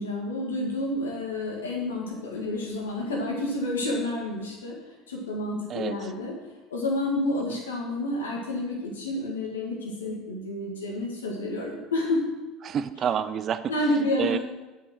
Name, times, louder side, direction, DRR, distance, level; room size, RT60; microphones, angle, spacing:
voice 1, 0.0-4.8 5.1-6.4 6.7-12.2 13.7-14.4, left 1 dB, 90° left, 0 dB, 1.8 m, -29 dB
voice 2, 5.7-6.1 7.4-7.6 12.6-13.7 14.2-14.4, right 8 dB, 45° right, 13 dB, 0.5 m, -29 dB
8.5 x 5.3 x 6.1 m, 1.1 s
hypercardioid pair, 70°, 0 cm